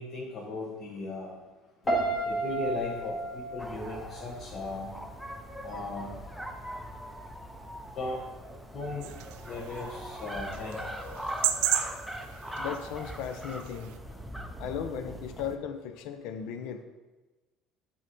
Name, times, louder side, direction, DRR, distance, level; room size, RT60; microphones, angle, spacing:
voice 1, 0.0-1.3 2.2-4.9 5.6-6.1 8.0-8.2 8.7-9.1 9.4-10.8, left 3 dB, 45° left, -4 dB, 1.0 m, -37 dB
Piano, 1.9-5.0 5.2-5.7, right 2 dB, 20° left, 1.3 m, -32 dB
sound 1, 3.6-15.6, equal, ahead, 0.5 m, -41 dB
sound 2, 9.0-14.0, right 12 dB, 85° right, 0.3 m, -35 dB
voice 2, 12.6-14.0 14.6-16.8, left 7 dB, 70° left, 9 dB, 0.5 m, -36 dB
7.7 x 2.8 x 4.4 m, 1.2 s
cardioid pair, 130°, 0 cm